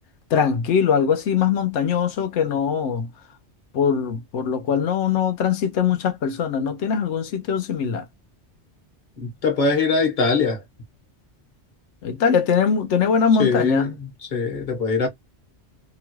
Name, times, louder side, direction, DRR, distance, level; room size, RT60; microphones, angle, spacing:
voice 1, 0.3-3.1 3.7-8.0 12.0-13.9, left 7 dB, 90° left, 1.0 m, -21 dB
voice 2, 9.2-10.6 13.4-15.1, left 4 dB, 45° left, 1.2 m, -22 dB
3.0 x 2.3 x 3.0 m
omnidirectional pair, 1.2 m